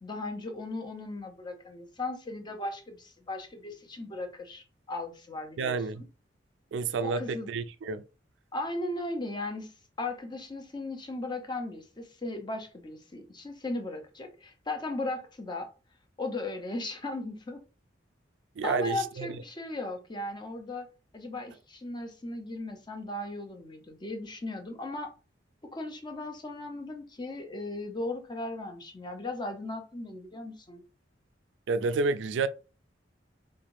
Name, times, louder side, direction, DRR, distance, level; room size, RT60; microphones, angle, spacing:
voice 1, 0.0-6.1 7.0-7.5 8.5-9.7 10.0-15.7 16.2-17.6 18.6-20.9 21.1-25.1 25.6-30.8, left 2 dB, 25° left, 0.6 m, -37 dB
voice 2, 5.6-6.0 6.7-8.0 18.6-19.3 31.7-32.5, right 4 dB, 80° right, 0.4 m, -29 dB
3.6 x 3.3 x 2.5 m
head